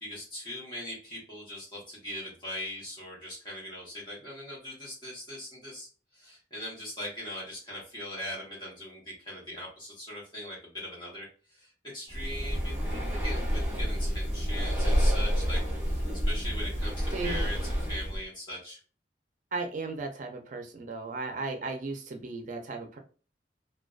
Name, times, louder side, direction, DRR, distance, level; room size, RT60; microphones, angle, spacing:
voice 1, 0.0-15.6 15.9-18.8, left 1 dB, 25° left, -5 dB, 1.0 m, -41 dB
Breathing, 12.1-18.2, equal, 15° right, 0.8 m, -29 dB
voice 2, 17.1-17.5 19.5-23.0, right 3 dB, 45° right, 4 dB, 0.4 m, -36 dB
2.4 x 2.2 x 2.3 m, 0.37 s
head